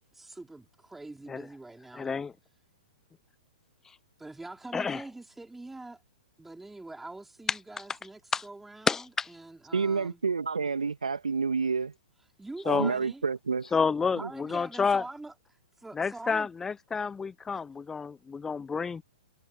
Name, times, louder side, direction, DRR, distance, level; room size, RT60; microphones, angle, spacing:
voice 1, 0.1-2.2 4.2-6.0 6.4-10.2 12.4-13.2 14.2-15.3 15.8-16.5 17.5-17.7, right 2 dB, 5° right, 4.9 m, -44 dB
voice 2, 1.9-2.3 4.7-5.0 8.3-8.4 8.9-9.3 12.7-12.9 13.7-15.0 15.9-19.0, left 5 dB, 10° left, 0.6 m, -29 dB
voice 3, 9.7-11.9 12.6-13.7 14.2-14.3, right 5 dB, 75° right, 2.2 m, -29 dB
figure-of-eight pair, 115°, 4 cm